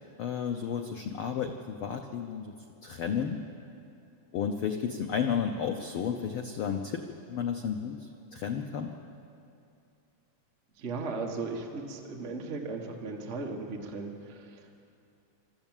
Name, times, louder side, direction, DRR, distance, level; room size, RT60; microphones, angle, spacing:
voice 1, 0.2-2.5 2.8-3.4 4.3-8.9, left 7 dB, 90° left, 5 dB, 1.1 m, -32 dB
voice 2, 10.8-14.7, right 3 dB, 30° right, 1 dB, 1.3 m, -37 dB
21.0 x 14.0 x 9.0 m, 2.6 s
omnidirectional pair, 3.5 m